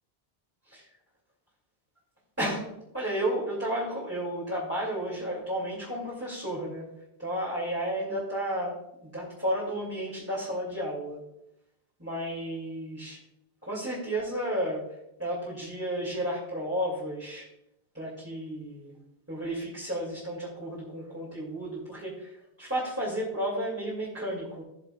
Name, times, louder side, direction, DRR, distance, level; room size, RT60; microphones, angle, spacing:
voice 1, 2.4-6.8 7.2-11.2 12.0-13.2 13.6-14.8 15.2-17.5 17.9-19.0 19.3-24.6, right 1 dB, 15° right, -7 dB, 2.5 m, -32 dB
16.5 x 6.7 x 2.4 m, 0.85 s
omnidirectional pair, 1.0 m